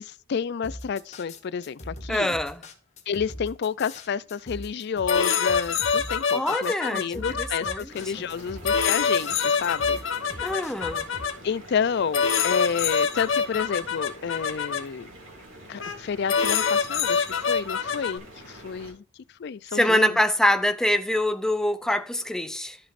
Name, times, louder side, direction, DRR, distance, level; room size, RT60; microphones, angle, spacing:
voice 1, 0.0-2.4 3.1-10.0 11.4-15.1 15.7-19.0 19.4-20.2, left 6 dB, 55° left, 0.4 m, -30 dB
sound 1, 0.6-11.3, left 1 dB, 35° left, 1.4 m, -41 dB
voice 2, 2.1-2.6 6.3-8.3 10.4-11.1 19.7-22.8, left 1 dB, 5° left, 0.5 m, -25 dB
sound 2, 5.1-7.7 8.7-11.3 12.1-14.8 15.8-16.0 16.3-18.2, left 6 dB, 75° left, 1.0 m, -25 dB
sound 3, 7.9-18.9, right 1 dB, 75° right, 2.8 m, -46 dB
14.0 x 5.2 x 2.5 m
head